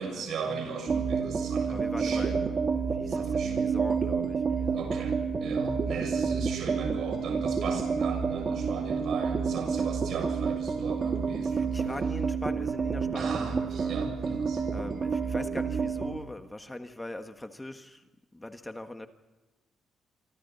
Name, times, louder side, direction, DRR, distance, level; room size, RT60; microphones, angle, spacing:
voice 1, 0.0-2.4 3.1-3.6 4.7-5.1 5.4-11.8 13.1-14.6, right 5 dB, 65° right, 4 dB, 7.1 m, -37 dB
sound 1, 0.9-16.2, right 5 dB, 40° right, 2.1 m, -29 dB
voice 2, 1.7-2.6 2.9-5.1 11.4-14.1 14.7-18.0 18.3-19.1, left 1 dB, 15° left, 7 dB, 1.5 m, -41 dB
26.5 x 25.5 x 4.2 m, 1.1 s
cardioid pair, 90°, 0 cm